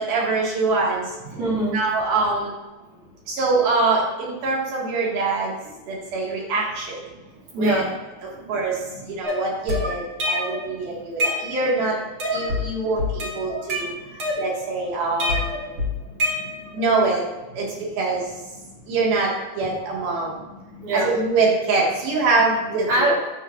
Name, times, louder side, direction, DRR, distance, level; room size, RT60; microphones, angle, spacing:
voice 1, 0.0-1.0 1.7-2.5 3.3-5.5 5.9-7.0 7.6-7.9 8.5-8.7 9.1-12.0 12.3-13.0 13.4-13.9 14.4-15.4 16.7-17.2 17.6-17.7 18.0-18.2 18.9-19.3 19.6-20.3 20.9-23.1, right 3 dB, 85° right, -3 dB, 3.7 m, -23 dB
voice 2, 1.2-1.8 5.7-5.8 7.1-7.2 7.5-7.9 8.3-9.2 10.6-11.0 12.3-12.5 13.4-14.2 15.1-15.2 15.7-16.7 17.6-17.9 18.6-18.9 19.6-20.0 20.7-21.2 22.7-23.2, right 1 dB, 65° right, -6 dB, 3.9 m, -28 dB
sound 1, 9.2-10.7 11.0-11.8 12.2-12.7 13.0-14.8 15.2-16.8, left 1 dB, 45° right, 1.8 m, -26 dB
9.6 x 7.4 x 2.5 m, 1.1 s
omnidirectional pair, 4.2 m